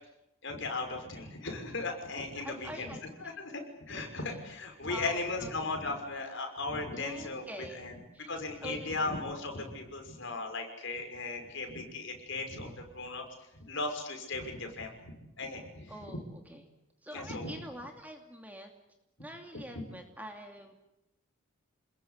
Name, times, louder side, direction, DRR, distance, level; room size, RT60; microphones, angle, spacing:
voice 1, 0.4-2.9 3.2-8.0 8.3-13.2 13.6-16.2 17.1-17.5, left 3 dB, 55° left, 4 dB, 5.9 m, -37 dB
voice 2, 2.4-3.4 4.9-5.8 6.9-7.9 8.1-8.3 8.6-8.9 15.9-16.6 17.0-18.7 19.2-20.7, equal, 5° right, 3 dB, 2.7 m, -45 dB
28.0 x 21.0 x 8.3 m, 0.91 s
head